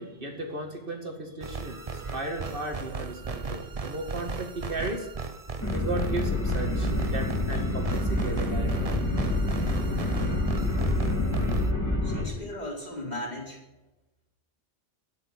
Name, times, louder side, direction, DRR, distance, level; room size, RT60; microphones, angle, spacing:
voice 1, 0.0-5.1 5.7-9.1, right 2 dB, 55° right, 2 dB, 2.2 m, -35 dB
sound 1, 1.4-11.7, right 4 dB, 35° right, 0.9 m, -36 dB
sound 2, 5.6-12.2, left 1 dB, 15° left, 3.2 m, -27 dB
voice 2, 12.0-13.6, left 1 dB, 40° left, -3 dB, 4.9 m, -36 dB
12.5 x 9.8 x 9.8 m, 0.98 s
omnidirectional pair, 1.1 m